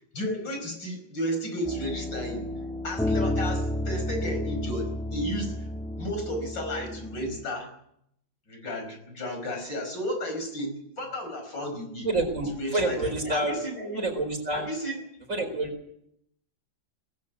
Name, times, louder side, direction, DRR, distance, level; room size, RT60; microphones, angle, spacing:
voice 1, 0.1-2.5 2.8-5.6 6.0-7.7 8.5-12.1 12.6-14.0 14.5-15.0, equal, 70° left, 5 dB, 6.0 m, -33 dB
sound 1, 1.6-7.4, left 1 dB, ahead, 1.3 m, -31 dB
voice 2, 12.0-13.6 14.0-14.6 15.3-15.7, right 2 dB, 40° right, 6 dB, 4.8 m, -28 dB
20.5 x 15.0 x 9.3 m, 0.75 s
omnidirectional pair, 2.1 m